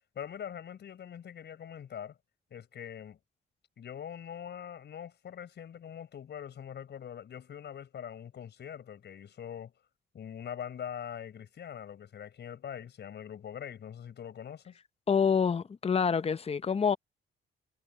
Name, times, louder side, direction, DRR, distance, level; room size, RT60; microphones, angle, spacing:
voice 1, 0.1-2.2 2.5-3.2 3.8-9.7 10.1-14.8, left 9 dB, 60° left, 6.1 m, -43 dB
voice 2, 15.1-17.0, left 6 dB, 30° left, 0.8 m, -27 dB
cardioid pair, 90°, 20 cm